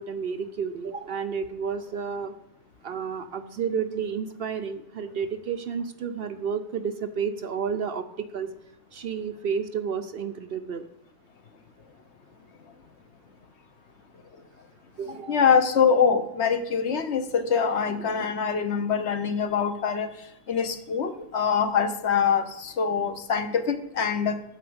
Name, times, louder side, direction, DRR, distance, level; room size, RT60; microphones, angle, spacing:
voice 1, 0.0-2.3 2.8-8.0 8.3-8.5 8.9-10.8 15.0-15.4, right 6 dB, 60° right, 9 dB, 0.8 m, -31 dB
voice 2, 15.1-24.4, left 6 dB, 65° left, 9 dB, 1.1 m, -24 dB
9.3 x 5.7 x 7.8 m, 0.89 s
omnidirectional pair, 1.3 m